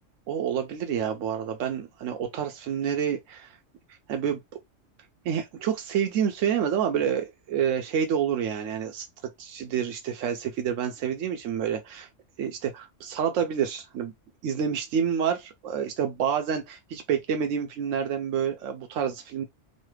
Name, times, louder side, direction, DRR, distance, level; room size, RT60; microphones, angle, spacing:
voice 1, 0.3-3.6 4.1-4.4 5.2-12.1 12.4-14.1 14.4-19.4, right 8 dB, 85° right, 1.0 m, -28 dB
3.1 x 2.1 x 3.1 m
omnidirectional pair, 1.3 m